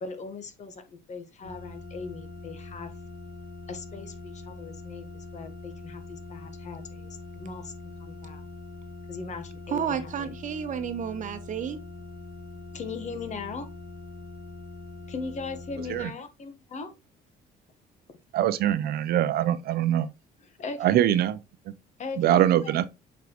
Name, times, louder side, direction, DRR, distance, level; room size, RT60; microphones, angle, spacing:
voice 1, 0.0-2.9 3.7-8.4 9.1-10.3 12.7-13.7 15.1-17.0 20.4-21.0 22.0-22.7, left 4 dB, 45° left, 1.3 m, -39 dB
sound 1, 1.4-16.1, left 2 dB, 60° left, 2.7 m, -43 dB
voice 2, 9.7-11.8, right 8 dB, 50° right, 1.0 m, -31 dB
voice 3, 18.3-20.1 20.8-21.4 22.2-22.9, right 11 dB, 65° right, 0.6 m, -23 dB
7.1 x 4.6 x 3.0 m
cardioid pair, 110°, 17 cm